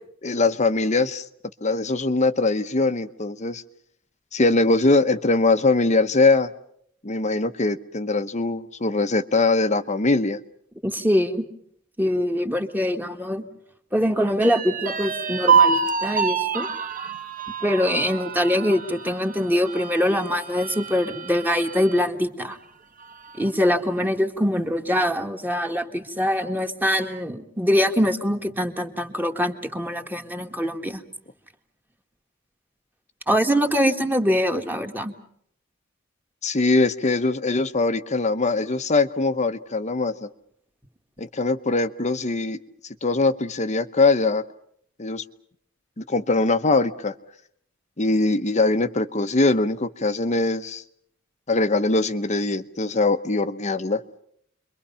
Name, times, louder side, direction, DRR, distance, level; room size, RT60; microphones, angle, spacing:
voice 1, 0.2-1.2 1.6-3.6 4.3-6.5 7.0-10.4 36.4-40.3 41.2-42.6 43.0-44.4 45.0-45.2 46.0-47.1 48.0-50.8 51.5-54.0, left 3 dB, 35° left, 11 dB, 1.0 m, -22 dB
voice 2, 10.8-11.4 12.0-13.4 13.9-16.7 17.6-22.6 23.4-31.0 33.3-35.1, equal, 10° right, 4 dB, 1.8 m, -23 dB
sound 1, 14.4-22.1 22.5-22.6 23.0-23.7, right 6 dB, 40° right, 1.2 m, -26 dB
30.0 x 23.5 x 5.7 m, 0.68 s
head